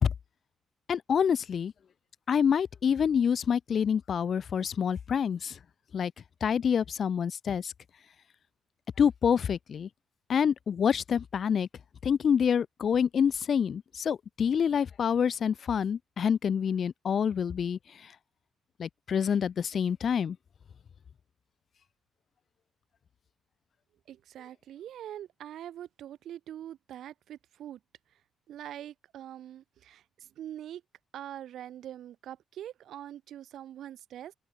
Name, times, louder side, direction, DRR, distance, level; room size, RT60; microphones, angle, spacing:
voice 1, 0.9-1.7 2.3-5.6 5.9-6.1 6.4-7.7 9.0-9.9 10.3-11.7 12.0-18.1 18.8-20.4, left 7 dB, 50° left, 0.7 m, -27 dB
voice 2, 24.1-27.8 28.5-30.8 31.1-34.3, right 11 dB, 75° right, 3.5 m, -43 dB
open air
cardioid pair, 90°, 0 cm